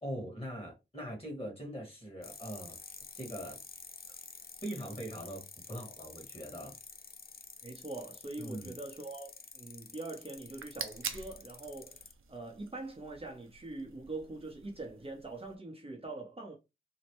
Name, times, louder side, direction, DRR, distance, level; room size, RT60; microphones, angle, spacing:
voice 1, 0.0-3.6 4.1-4.2 4.6-6.8 8.4-8.7, equal, 30° left, 1.6 m, -42 dB
sound 1, 2.2-12.1, left 5 dB, 50° left, 0.5 m, -50 dB
voice 2, 7.6-12.0 12.3-16.6, right 2 dB, 30° right, 0.7 m, -43 dB
sound 2, 10.4-15.6, right 6 dB, 90° right, 0.4 m, -46 dB
3.1 x 2.1 x 2.9 m
wide cardioid pair, 60°, 20 cm